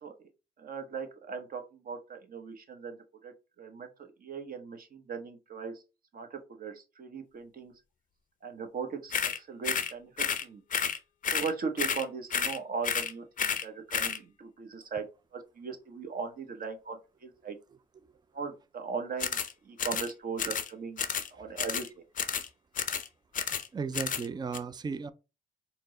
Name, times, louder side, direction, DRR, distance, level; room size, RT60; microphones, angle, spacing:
voice 1, 0.6-3.0 3.2-5.8 6.1-7.7 8.4-10.6 11.3-13.2 13.6-15.0 15.3-17.6 18.3-19.4 19.6-21.0 21.3-22.0, right 5 dB, 45° right, 0.9 m, -38 dB
sound 1, 9.1-9.4 9.6-9.9 10.2-10.4 10.7-11.0 11.2-11.5 11.8-12.0 12.3-12.6 12.8-13.1 13.4-13.6 13.9-14.2 19.2-19.5 19.8-20.1 20.4-20.7 21.0-21.3 21.6-21.9 22.2-22.5 22.8-23.1 23.3-23.7 23.9-24.3 24.5-24.6, left 7 dB, 40° left, 0.5 m, -31 dB
voice 2, 23.7-25.1, right 5 dB, 20° right, 0.4 m, -35 dB
4.4 x 2.0 x 3.8 m
cardioid pair, 90°, 20 cm